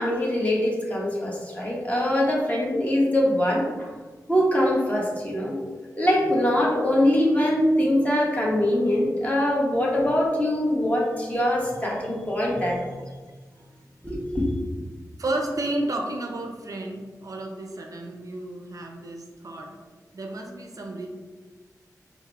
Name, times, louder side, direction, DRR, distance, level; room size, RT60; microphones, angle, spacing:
voice 1, 0.0-3.9 4.3-5.6 6.0-13.0 14.0-14.5, left 1 dB, 20° left, -4 dB, 1.1 m, -23 dB
voice 2, 13.5-13.9 15.2-19.8 20.1-21.1, right 2 dB, 60° right, 2 dB, 0.5 m, -32 dB
4.5 x 2.0 x 3.4 m, 1.4 s
cardioid pair, 50°, 7 cm